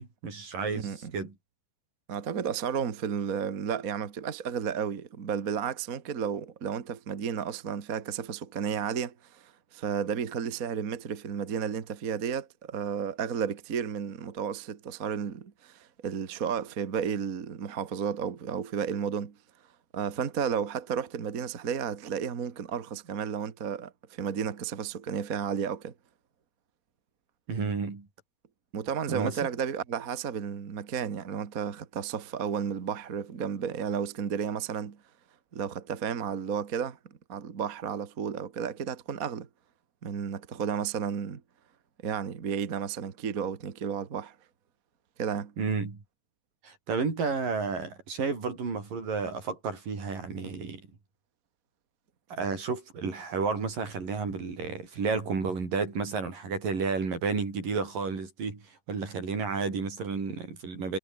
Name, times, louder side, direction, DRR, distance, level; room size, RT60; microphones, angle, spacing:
voice 1, 0.0-1.3 27.5-28.1 29.1-29.4 45.6-46.0 46.6-50.8 52.3-61.0, right 4 dB, 80° right, 7.5 m, -31 dB
voice 2, 2.1-19.4 19.9-25.9 28.7-35.0 35.5-37.0 37.3-39.5 40.0-41.4 42.0-44.3 45.2-45.5, right 7 dB, 40° right, 1.4 m, -32 dB
omnidirectional pair, 3.9 m